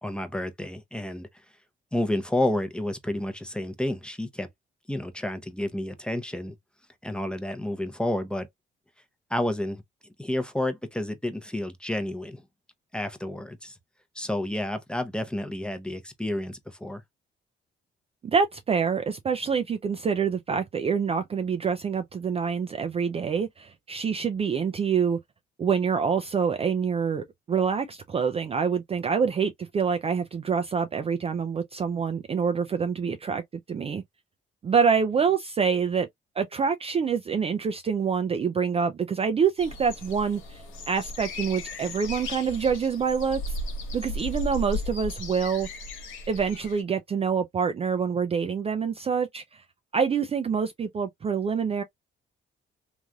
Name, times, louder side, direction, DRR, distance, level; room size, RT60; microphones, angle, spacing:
voice 1, 0.0-1.3 1.9-4.5 4.9-6.6 7.0-8.5 9.3-9.8 10.2-12.4 12.9-13.8 14.1-17.0, left 1 dB, 5° left, 0.6 m, -30 dB
voice 2, 18.2-25.2 25.6-33.4 33.7-34.0 34.6-36.1 36.4-43.6 43.9-45.7 46.3-49.6 49.9-51.8, right 6 dB, 30° right, 0.3 m, -26 dB
sound 1, 39.6-46.8, left 2 dB, 85° left, 1.2 m, -36 dB
3.1 x 2.5 x 2.3 m
cardioid pair, 90°, 20 cm